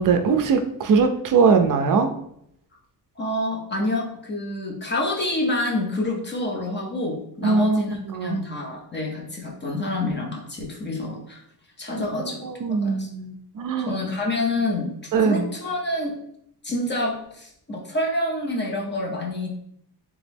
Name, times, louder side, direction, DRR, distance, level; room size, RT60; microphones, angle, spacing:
voice 1, 0.0-2.1 7.4-8.4 12.2-13.9 15.1-15.5, right 5 dB, 55° right, 7 dB, 0.4 m, -21 dB
voice 2, 3.2-11.4 11.8-12.5 12.8-13.1 13.9-16.2 16.6-19.6, left 1 dB, 25° left, 0 dB, 0.6 m, -27 dB
3.5 x 3.0 x 3.3 m, 0.71 s
wide cardioid pair, 180°, 40 cm